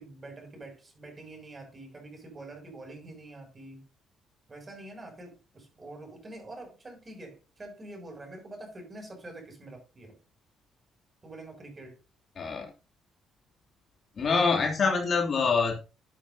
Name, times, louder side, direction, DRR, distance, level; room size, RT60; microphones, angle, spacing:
voice 1, 0.0-3.8 4.5-10.2 11.2-12.0, right 2 dB, 30° right, 6.7 m, -46 dB
voice 2, 12.4-12.7 14.2-15.7, left 4 dB, 50° left, 3.0 m, -25 dB
12.0 x 9.2 x 2.8 m
hypercardioid pair, 50°, 0 cm